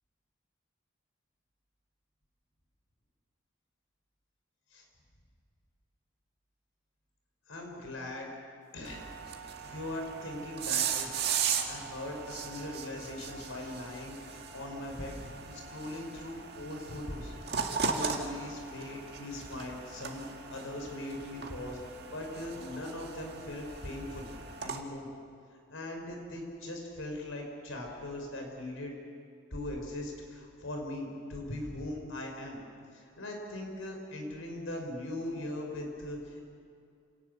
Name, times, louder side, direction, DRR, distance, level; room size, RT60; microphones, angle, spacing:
voice 1, 7.5-8.3 8.7-9.0 9.4-11.2 11.7-17.3 17.8-20.2 20.5-24.3 24.6-25.1 25.5-29.0 29.5-32.6 32.9-36.4, left 1 dB, 85° left, 1 dB, 5.3 m, -40 dB
sound 1, 8.9-24.8, right 6 dB, 50° right, 2.0 m, -37 dB
27.0 x 18.5 x 6.9 m, 2.4 s
head